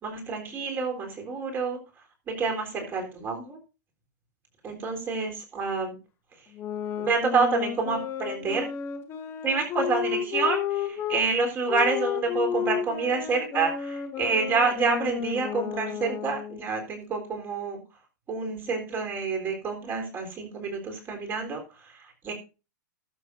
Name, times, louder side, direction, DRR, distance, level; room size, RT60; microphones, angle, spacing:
voice 1, 0.0-1.8 2.3-3.6 4.6-6.0 7.0-8.7 9.4-17.8 18.3-22.3, right 4 dB, 20° right, 4 dB, 3.8 m, -28 dB
sound 1, 6.5-11.2 11.7-16.7, left 9 dB, 25° left, 1.7 m, -32 dB
18.5 x 7.8 x 2.7 m, 0.30 s
figure-of-eight pair, 105°, 10 cm